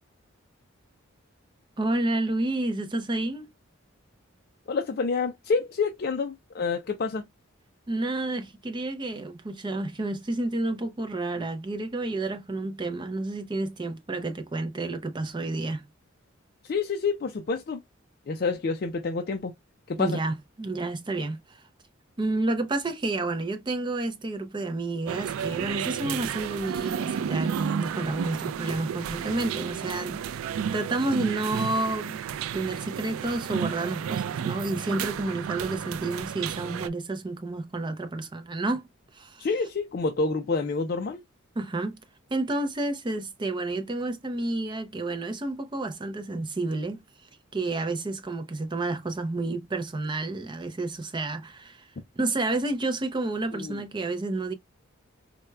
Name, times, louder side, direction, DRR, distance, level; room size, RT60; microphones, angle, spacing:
voice 1, 1.8-3.5 7.9-15.8 20.0-21.6 22.2-30.2 30.7-32.2 32.5-38.8 39.1-39.5 41.6-42.0 42.3-47.0 47.5-51.9 52.2-54.5, right 2 dB, 20° right, 0.5 m, -30 dB
voice 2, 4.7-7.3 16.6-17.8 18.3-19.5 19.9-20.2 39.4-41.2 53.5-53.8, left 4 dB, 45° left, 0.4 m, -28 dB
sound 1, 25.1-36.9, right 8 dB, 85° right, 0.3 m, -32 dB
4.4 x 2.1 x 2.2 m
head